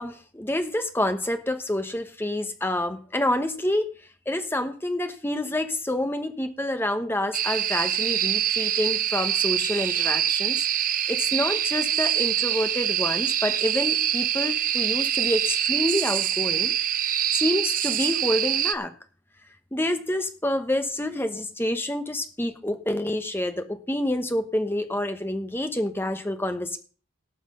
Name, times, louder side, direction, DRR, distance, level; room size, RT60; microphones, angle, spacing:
voice 1, 0.0-3.9 4.3-16.7 17.3-18.9 19.7-26.8, left 1 dB, 10° left, 8 dB, 1.0 m, -28 dB
sound 1, 7.3-18.7, right 11 dB, 40° right, 0.6 m, -25 dB
18.0 x 5.9 x 5.6 m, 0.41 s
head